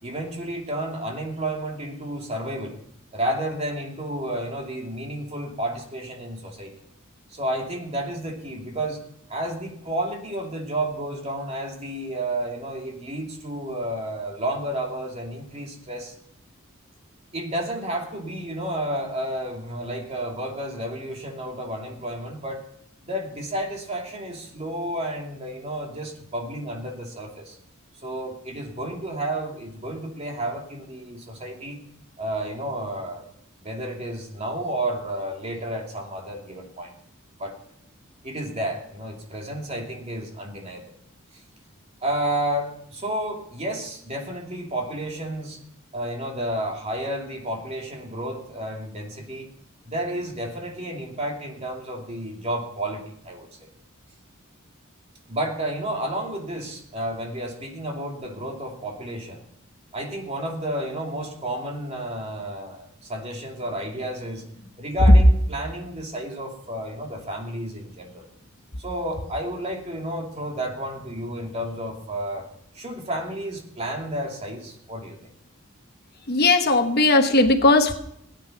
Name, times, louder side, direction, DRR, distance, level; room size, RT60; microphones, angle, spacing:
voice 1, 0.0-2.8 3.1-6.7 7.3-9.0 9.3-16.1 17.3-22.6 23.0-27.6 28.0-31.8 32.2-33.3 33.6-36.9 37.4-37.6 38.2-40.9 42.0-45.6 45.9-49.5 49.9-53.5 55.3-59.4 59.9-64.4 64.8-68.3 68.8-72.5 72.7-75.2, right 1 dB, 30° right, 1 dB, 2.8 m, -31 dB
voice 2, 76.3-77.9, left 2 dB, 50° left, 6 dB, 1.2 m, -18 dB
17.5 x 9.6 x 5.8 m, 0.75 s
head